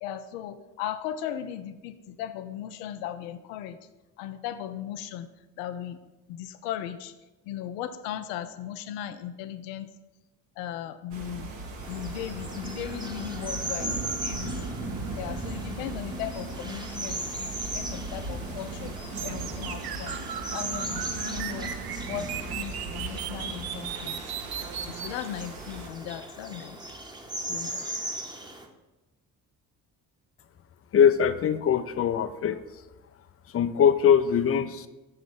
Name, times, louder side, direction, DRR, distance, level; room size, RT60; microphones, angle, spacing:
voice 1, 0.0-3.8 4.2-5.3 5.6-6.0 6.3-7.1 7.4-9.9 10.6-11.5 11.9-14.5 15.2-18.9 19.2-20.2 20.5-21.7 22.1-24.2 24.8-26.8 27.5-27.9, left 10 dB, 75° left, 11 dB, 0.5 m, -37 dB
sound 1, 11.1-25.9, right 2 dB, 65° right, 1.2 m, -38 dB
sound 2, 11.8-28.7, right 1 dB, 10° right, 0.9 m, -38 dB
sound 3, 19.1-25.1, right 9 dB, 50° right, 0.6 m, -37 dB
voice 2, 30.9-32.6 33.5-34.9, left 8 dB, 30° left, 12 dB, 0.4 m, -22 dB
6.8 x 3.2 x 6.0 m, 1.1 s
figure-of-eight pair, 40°, 49 cm